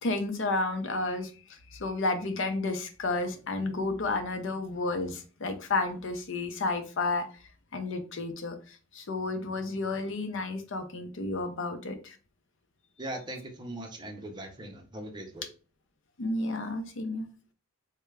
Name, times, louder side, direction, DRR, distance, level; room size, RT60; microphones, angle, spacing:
voice 1, 0.0-7.3 7.7-12.2 16.2-17.3, left 2 dB, 60° left, 6 dB, 0.6 m, -31 dB
voice 2, 13.0-15.5, right 1 dB, 20° right, 3 dB, 0.6 m, -40 dB
3.4 x 2.2 x 3.3 m, 0.36 s
head